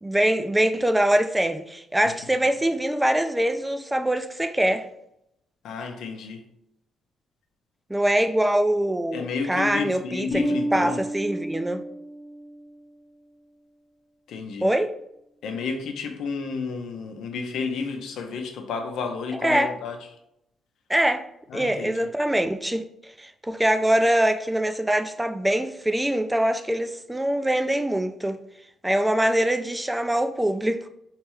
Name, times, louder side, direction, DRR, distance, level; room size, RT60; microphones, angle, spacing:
voice 1, 0.0-4.8 7.9-10.4 10.7-11.8 14.6-14.9 19.4-19.7 20.9-21.3 21.5-28.4 28.8-30.9, right 1 dB, 10° right, 0.4 m, -23 dB
voice 2, 2.0-2.4 5.6-6.5 9.1-11.0 14.3-14.7 15.4-20.0 21.5-22.1, left 5 dB, 75° left, 0.7 m, -31 dB
Bass guitar, 10.3-12.7, right 1 dB, 35° left, 0.7 m, -31 dB
3.3 x 3.1 x 4.7 m
cardioid pair, 90°, 0 cm